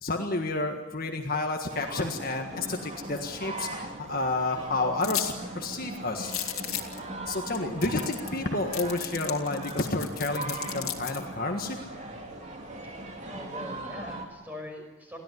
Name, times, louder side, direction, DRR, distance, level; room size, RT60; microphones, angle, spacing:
voice 1, 0.0-6.3 7.3-11.8, left 2 dB, 40° left, 3 dB, 1.6 m, -30 dB
sound 1, 1.7-14.3, right 2 dB, 30° right, 3.0 m, -39 dB
sound 2, 5.0-5.3 5.6-5.7 6.2-7.0 7.5-7.6 7.8-8.4 8.7-11.2, left 12 dB, 85° left, 2.5 m, -34 dB
voice 2, 13.3-15.2, left 1 dB, 10° right, 2 dB, 5.6 m, -42 dB
23.5 x 16.0 x 9.6 m, 1.1 s
head